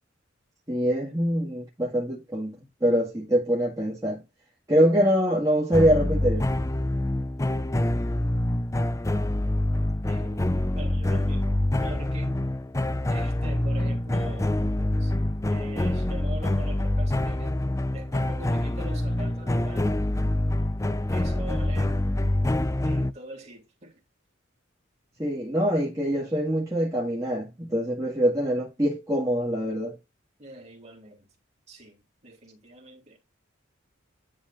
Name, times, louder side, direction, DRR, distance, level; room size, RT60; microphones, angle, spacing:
voice 1, 0.7-4.2 4.7-6.5 25.2-30.0, equal, 15° right, 1.8 m, -24 dB
sound 1, 5.7-23.1, left 1 dB, 15° left, 0.5 m, -26 dB
voice 2, 10.1-11.5 11.8-12.3 13.1-14.5 15.0-15.1 15.5-17.5 17.9-20.0 21.1-21.9 22.8-24.0 30.4-31.3 31.7-33.2, right 1 dB, 35° right, 3.0 m, -43 dB
10.5 x 3.7 x 3.7 m
head